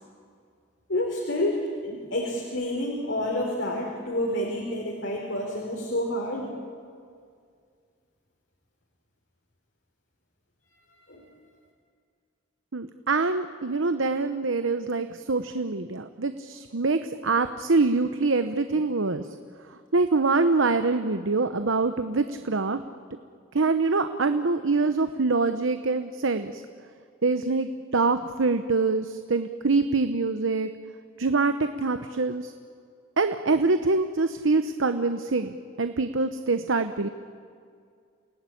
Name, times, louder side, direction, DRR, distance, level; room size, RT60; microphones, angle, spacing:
voice 1, 0.9-6.5 11.1-11.2, left 1 dB, 70° left, -1 dB, 4.0 m, -29 dB
voice 2, 12.7-19.3 19.9-22.8 23.5-26.6 27.2-30.7 31.2-32.5 33.2-37.1, right 3 dB, 80° right, 9 dB, 0.9 m, -25 dB
28.5 x 18.0 x 10.0 m, 2.2 s
head